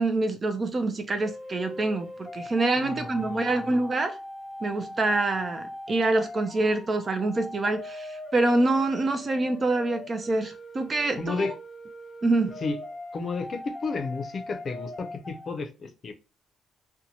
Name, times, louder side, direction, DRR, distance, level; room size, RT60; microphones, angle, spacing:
voice 1, 0.0-4.2 4.6-11.5 12.2-12.6, right 2 dB, 35° right, 0.4 m, -26 dB
sound 1, 1.1-15.5, left 1 dB, 20° left, 0.8 m, -41 dB
voice 2, 2.8-3.7 11.2-11.5 12.6-12.8 13.1-16.1, left 4 dB, 45° left, 0.5 m, -32 dB
2.6 x 2.2 x 2.8 m
cardioid pair, 90°, 0 cm